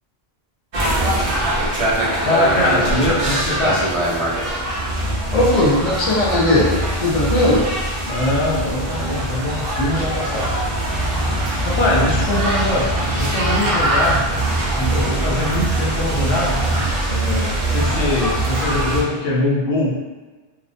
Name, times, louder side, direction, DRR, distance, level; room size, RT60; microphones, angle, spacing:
sound 1, 0.7-19.0, right 1 dB, 45° right, 0.4 m, -22 dB
voice 1, 2.3-3.9 8.0-10.7 11.6-14.3 14.8-16.8 17.1-20.0, left 1 dB, 80° left, -4 dB, 0.8 m, -22 dB
voice 2, 5.3-7.6, left 1 dB, 45° left, -5 dB, 0.6 m, -17 dB
2.4 x 2.0 x 2.5 m, 1.3 s
omnidirectional pair, 1.0 m